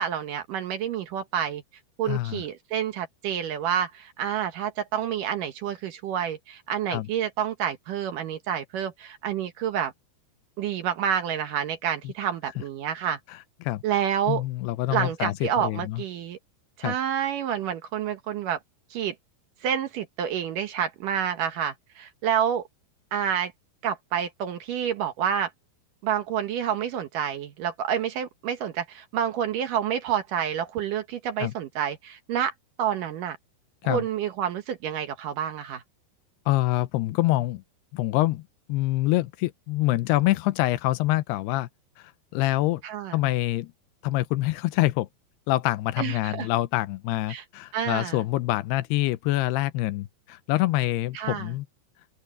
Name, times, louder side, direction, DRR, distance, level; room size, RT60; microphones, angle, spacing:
voice 1, 0.0-1.6 2.0-9.9 10.6-13.2 13.8-14.4 14.9-16.4 16.8-18.6 18.9-19.1 19.6-22.7 23.1-23.5 23.8-25.5 26.0-32.5 32.8-33.4 33.8-35.8 42.8-43.2 46.0-46.5 47.3-47.4 47.7-48.2 51.1-51.5, right 9 dB, 65° right, 2.4 m, -28 dB
voice 2, 2.1-2.4 6.9-7.1 12.0-12.1 13.3-13.8 14.3-16.0 16.8-16.9 31.4-31.5 33.8-34.0 36.5-37.6 37.9-41.7 42.0-42.8 43.1-43.7 44.0-45.1 45.5-51.7, left 17 dB, 85° left, 2.7 m, -26 dB
open air
omnidirectional pair, 4.8 m